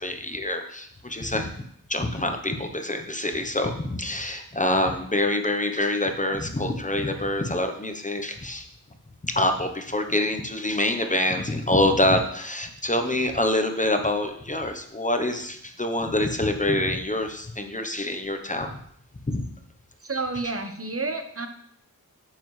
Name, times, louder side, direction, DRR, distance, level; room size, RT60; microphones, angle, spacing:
voice 1, 0.0-1.5 1.9-8.7 9.2-18.7 19.3-19.4, left 1 dB, 20° left, 5 dB, 0.8 m, -26 dB
voice 2, 20.0-21.5, right 3 dB, 40° right, 6 dB, 0.9 m, -30 dB
9.1 x 7.7 x 3.2 m, 0.69 s
wide cardioid pair, 95°, 35 cm